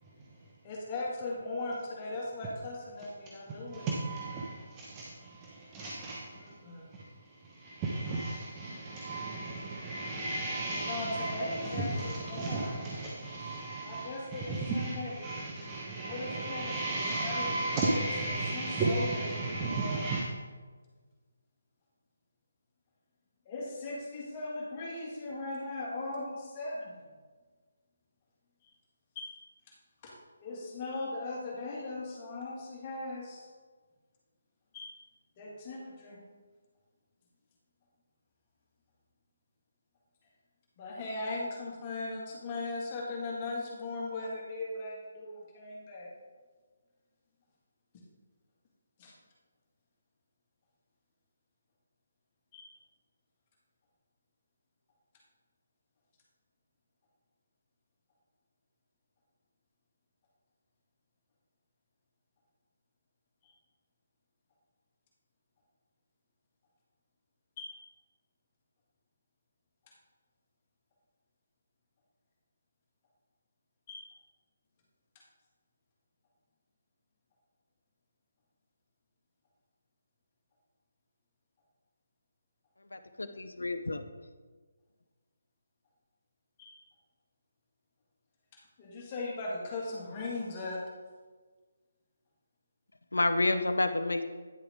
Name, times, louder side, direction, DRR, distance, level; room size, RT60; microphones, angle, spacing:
voice 1, 0.0-0.5 3.5-20.2, right 2 dB, 20° right, 0.9 m, -35 dB
voice 2, 0.6-3.9 6.4-6.9 10.9-12.8 13.8-15.1 16.1-16.9 17.2-18.0 18.5-19.2 19.6-20.0 23.5-27.0 29.2-29.3 30.0-30.1 30.4-33.5 34.7-34.9 35.4-36.2 40.8-46.1 49.0-49.1 52.5-52.7 63.4-63.5 67.6-67.7 73.9-74.1 86.6-86.8 88.8-90.8, left 2 dB, 30° left, 2.0 m, -38 dB
voice 3, 82.8-84.0 93.1-94.2, left 2 dB, 75° left, 0.7 m, -29 dB
10.0 x 6.7 x 3.7 m
figure-of-eight pair, 145°, 0 cm